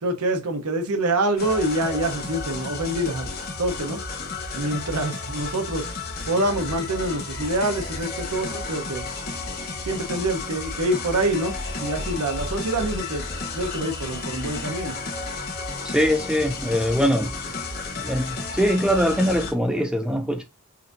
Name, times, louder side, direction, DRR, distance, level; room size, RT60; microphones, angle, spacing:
voice 1, 0.0-3.3 3.6-4.0 4.5-5.9 6.3-9.0 9.9-11.5 11.8-13.2 13.5-15.0, right 1 dB, 90° right, 0.9 m, -26 dB
sound 1, 1.4-19.5, left 3 dB, 45° left, 1.2 m, -32 dB
voice 2, 15.8-17.3 18.0-20.4, equal, 5° right, 0.4 m, -22 dB
5.6 x 2.6 x 2.6 m
head